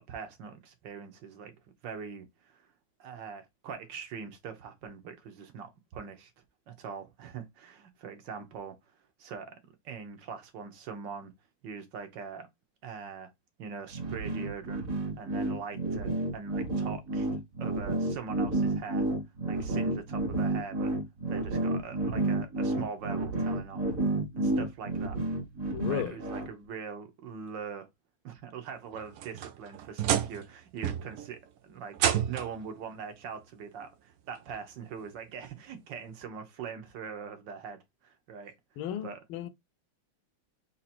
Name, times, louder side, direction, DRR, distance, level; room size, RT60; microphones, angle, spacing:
voice 1, 0.0-1.6 1.8-2.7 3.0-6.3 6.7-8.8 9.2-11.3 11.6-12.5 12.8-13.3 13.6-17.3 17.6-19.1 19.5-20.9 21.3-23.9 24.3-25.2 25.6-27.9 28.2-32.0 32.3-38.5 39.0-39.2, right 6 dB, 65° right, 1.5 m, -42 dB
sound 1, 13.9-26.5, right 2 dB, 45° right, 1.7 m, -30 dB
voice 2, 25.7-26.2 38.8-39.5, left 9 dB, 85° left, 1.5 m, -34 dB
sound 2, 28.9-30.5 30.8-31.3 31.9-32.6 33.8-33.9 34.5-34.6 36.2-36.3, right 10 dB, 80° right, 0.8 m, -30 dB
4.2 x 2.7 x 4.3 m
omnidirectional pair, 2.2 m